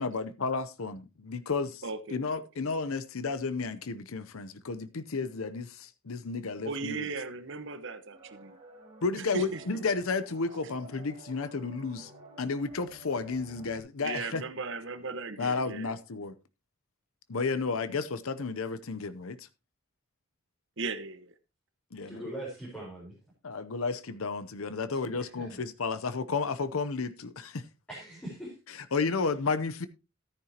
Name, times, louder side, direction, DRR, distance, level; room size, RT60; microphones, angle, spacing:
voice 1, 0.0-1.8 2.1-7.1 9.0-12.1 12.4-14.4 15.4-16.3 17.3-19.5 21.9-22.2 23.4-27.7 28.7-29.9, left 4 dB, 70° left, 0.7 m, -32 dB
voice 2, 1.8-2.2 6.6-8.6 9.3-9.6 14.0-15.9 20.8-21.3, right 4 dB, 55° right, 1.1 m, -37 dB
sound 1, 8.1-13.8, right 2 dB, 25° right, 3.5 m, -52 dB
voice 3, 22.0-23.1 25.1-25.6 27.9-28.6, right 1 dB, 5° left, 4.3 m, -41 dB
14.0 x 9.6 x 2.9 m
head